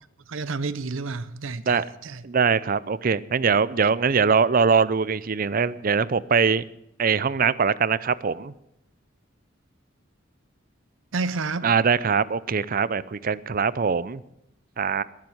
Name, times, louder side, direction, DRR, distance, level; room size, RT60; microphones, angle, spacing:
voice 1, 0.3-2.2 11.1-11.7, right 3 dB, 85° right, 0.7 m, -30 dB
voice 2, 2.2-6.6 7.0-8.5 11.6-14.2 14.8-15.0, right 5 dB, 45° right, 0.5 m, -22 dB
20.5 x 7.6 x 7.9 m
head